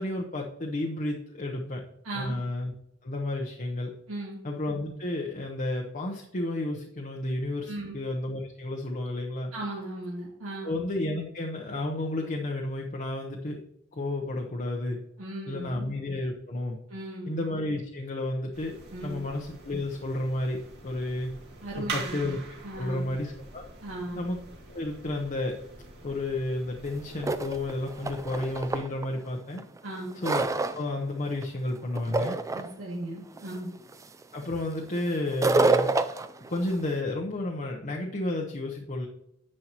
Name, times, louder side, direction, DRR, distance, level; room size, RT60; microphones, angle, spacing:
voice 1, 0.0-1.8 2.1-2.7 3.0-3.9 4.4-9.5 10.6-13.6 13.9-15.0 15.5-16.8 17.3-18.8 19.0-21.3 21.8-22.4 22.8-23.6 24.2-24.4 24.7-25.6 26.0-29.6 30.2-30.5 30.7-32.4 34.3-35.9 36.5-39.1, left 1 dB, 40° left, 0 dB, 0.9 m, -31 dB
voice 2, 2.0-2.4 4.1-4.4 7.7-8.0 9.5-10.7 15.2-15.9 16.9-17.4 18.9-19.2 21.6-22.4 22.6-23.1 23.8-24.3 29.8-30.2 32.5-33.7, right 1 dB, 90° right, -5 dB, 2.1 m, -37 dB
sound 1, 18.5-28.8, right 3 dB, 55° right, 2.3 m, -44 dB
sound 2, 26.9-27.0 27.2-29.1 29.6-30.9 31.3-31.7 32.0-32.7 33.4-33.5 33.9-34.2 35.3-36.9, right 3 dB, 15° right, 0.3 m, -27 dB
10.5 x 7.5 x 3.0 m, 0.79 s
head